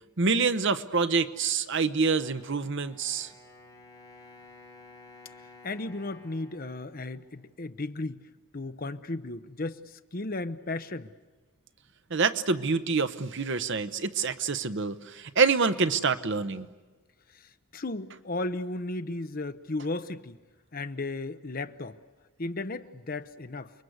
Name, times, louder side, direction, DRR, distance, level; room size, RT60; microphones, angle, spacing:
voice 1, 0.2-3.3 12.1-16.7, right 4 dB, 55° right, 11 dB, 1.0 m, -26 dB
Wind instrument woodwind instrument, 2.2-8.1, left 2 dB, 15° left, 6.4 m, -54 dB
voice 2, 5.6-8.2 8.5-11.1 17.7-20.4 20.7-22.0 22.4-23.7, left 2 dB, 40° left, 11 dB, 0.8 m, -35 dB
29.5 x 22.0 x 8.1 m, 1.3 s
head